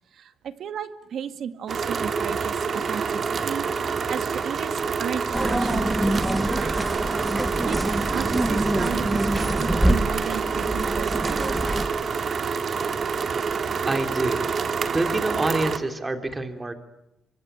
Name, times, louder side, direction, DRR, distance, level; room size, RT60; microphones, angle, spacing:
voice 1, 0.1-6.8 7.7-11.5, right 8 dB, 65° right, 9 dB, 1.9 m, -34 dB
sound 1, 1.7-15.8, right 5 dB, 50° right, 2.0 m, -27 dB
sound 2, 5.3-11.9, right 1 dB, 5° right, 1.3 m, -25 dB
voice 2, 13.9-14.5 14.9-16.7, right 2 dB, 20° right, 6 dB, 3.3 m, -26 dB
24.5 x 24.5 x 8.9 m, 0.87 s
cardioid pair, 90°, 0 cm